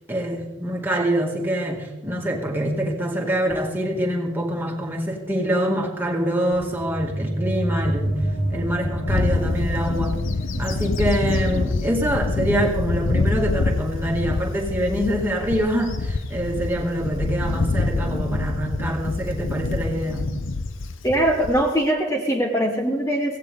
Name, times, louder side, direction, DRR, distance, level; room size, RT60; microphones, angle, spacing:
voice 1, 0.1-8.2 8.5-10.2 10.6-20.3, equal, 10° right, -1 dB, 2.2 m, -25 dB
sound 1, 6.5-17.6, equal, 45° left, 2.4 m, -31 dB
Bird / Wind, 9.1-21.9, left 3 dB, 80° left, 0.8 m, -26 dB
voice 2, 21.0-23.4, right 1 dB, 15° left, 2 dB, 1.1 m, -21 dB
16.5 x 16.0 x 3.6 m, 1.1 s
head